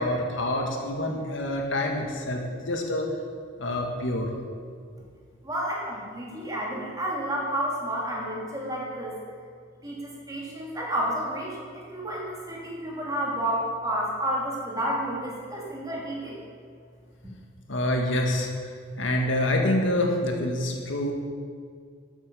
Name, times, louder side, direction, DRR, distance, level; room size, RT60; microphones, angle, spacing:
voice 1, 0.0-3.1 3.6-4.3 17.7-18.5 19.0-21.1, left 1 dB, 70° left, 1 dB, 1.9 m, -26 dB
voice 2, 5.4-9.1 9.8-16.4, right 1 dB, 20° right, -4 dB, 2.7 m, -30 dB
12.5 x 8.5 x 6.9 m, 2.1 s
head